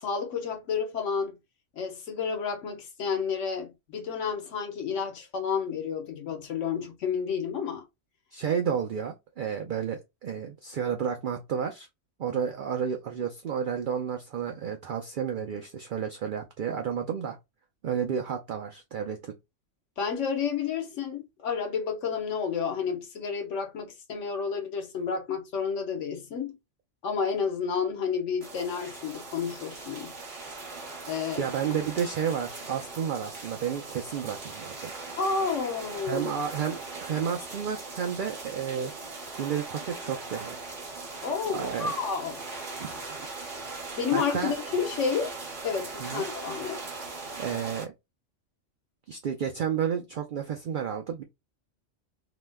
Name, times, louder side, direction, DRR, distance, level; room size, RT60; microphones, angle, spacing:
voice 1, 0.0-1.3 1.8-7.8 20.0-26.6 27.0-30.1 31.1-31.5 35.2-36.3 41.2-42.4 44.0-45.3 45.6-46.8, left 6 dB, 90° left, 1.2 m, -30 dB
voice 2, 8.3-11.9 12.2-17.4 17.8-19.3 31.4-34.9 36.1-38.9 39.4-40.6 41.5-41.9 42.8-42.9 43.6-44.5 46.0-46.2 47.4-47.9 49.1-51.2, right 7 dB, 60° right, 0.5 m, -31 dB
sound 1, 28.4-47.9, right 3 dB, 45° right, 1.0 m, -40 dB
2.9 x 2.1 x 3.3 m
omnidirectional pair, 1.2 m